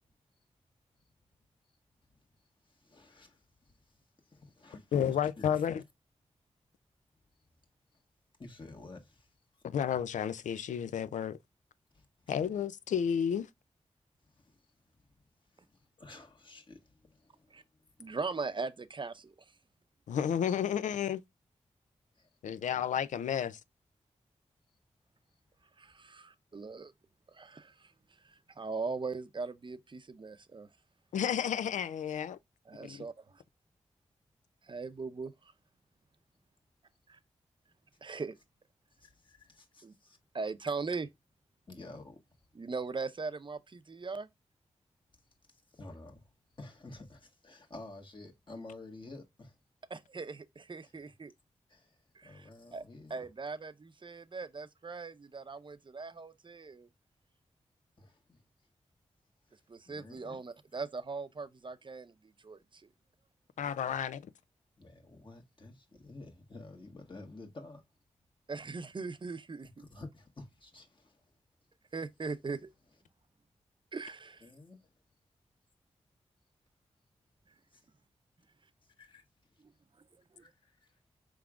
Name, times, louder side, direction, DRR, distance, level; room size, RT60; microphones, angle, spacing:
voice 1, 2.1-5.6 7.4-7.5 8.4-9.6 11.9-12.3 14.2-15.2 15.5-18.2 22.1-22.3 25.9-26.1 38.9-40.2 41.7-42.5 45.5-49.6 50.8-50.9 51.7-53.1 58.0-58.4 59.5-60.4 64.8-67.8 69.8-71.3 74.4-74.9 77.7-77.8 78.8-79.2 79.5-79.7 80.4-81.0, left 2 dB, 40° left, 1.5 m, -52 dB
voice 2, 4.9-5.8 9.6-11.4 12.3-13.5 20.1-21.2 22.4-23.6 31.1-32.4 32.8-33.0 63.6-64.2, left 8 dB, 80° left, 0.4 m, -31 dB
voice 3, 18.0-19.6 25.8-26.9 27.3-30.7 32.7-33.1 34.6-35.5 37.1-37.2 38.0-38.4 39.8-39.9 40.3-41.1 42.5-44.3 49.9-51.3 52.1-52.8 53.1-56.9 59.7-62.9 68.5-69.7 71.9-72.7 73.9-74.5 77.5-77.6 80.3-80.5, right 4 dB, 40° right, 0.6 m, -40 dB
4.7 x 3.5 x 2.3 m
cardioid pair, 40°, 13 cm